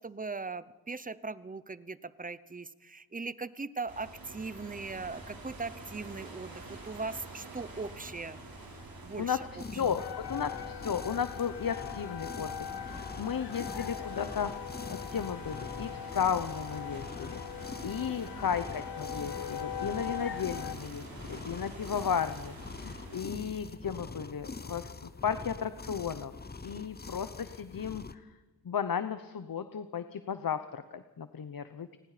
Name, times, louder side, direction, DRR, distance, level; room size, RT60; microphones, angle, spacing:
voice 1, 0.0-8.4 9.0-9.5 9.7-9.8 18.2-18.4, right 4 dB, 20° right, 16 dB, 0.7 m, -40 dB
sound 1, 3.9-23.2, right 2 dB, 65° right, 4.4 m, -47 dB
voice 2, 9.2-14.5 14.9-26.3 26.6-28.3 28.6-31.9, left 7 dB, 60° left, 11 dB, 0.9 m, -34 dB
sound 2, 9.6-28.2, left 4 dB, 25° left, 0.8 m, -44 dB
sound 3, 10.0-20.8, left 9 dB, 90° left, 0.6 m, -41 dB
29.0 x 20.0 x 5.0 m, 1.2 s
wide cardioid pair, 130°, 38 cm